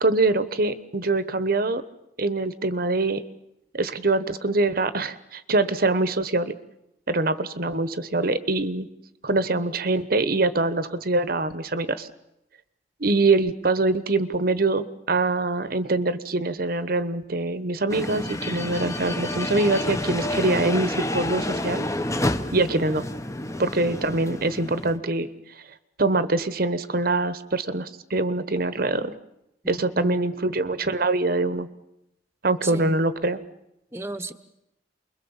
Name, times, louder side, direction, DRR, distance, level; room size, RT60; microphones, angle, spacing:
voice 1, 0.0-1.8 2.2-3.2 3.7-6.5 7.1-8.9 9.2-12.1 13.0-21.8 22.5-23.0 23.6-25.3 26.0-29.1 29.7-31.7 32.4-33.4, right 2 dB, 55° right, 13 dB, 1.1 m, -24 dB
sound 1, 17.9-25.0, left 1 dB, 15° left, 1.1 m, -29 dB
voice 2, 29.6-30.2 32.6-33.0 33.9-34.3, right 2 dB, 15° right, 11 dB, 1.2 m, -34 dB
29.0 x 22.5 x 7.3 m, 0.85 s
head